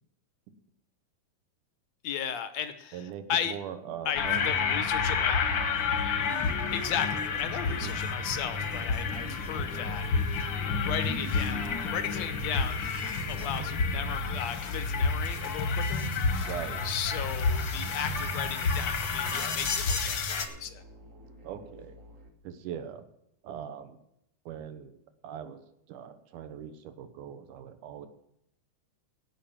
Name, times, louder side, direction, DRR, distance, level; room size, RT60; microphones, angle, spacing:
voice 1, 2.0-3.6 4.1-5.4 6.7-10.4 10.8-12.9 13.3-16.1 16.8-20.8, left 8 dB, 70° left, 10 dB, 1.8 m, -35 dB
voice 2, 2.9-4.4 7.7-7.9 16.4-16.8 21.4-22.0 22.4-23.0 23.4-24.0 24.5-25.0 25.2-25.6 25.9-28.1, right 9 dB, 80° right, 10 dB, 2.6 m, -41 dB
sound 1, 4.2-20.5, left 4 dB, 55° left, 1.4 m, -30 dB
sound 2, 4.5-22.3, right 1 dB, 40° right, 1.1 m, -51 dB
16.0 x 6.0 x 7.2 m, 0.78 s
omnidirectional pair, 3.7 m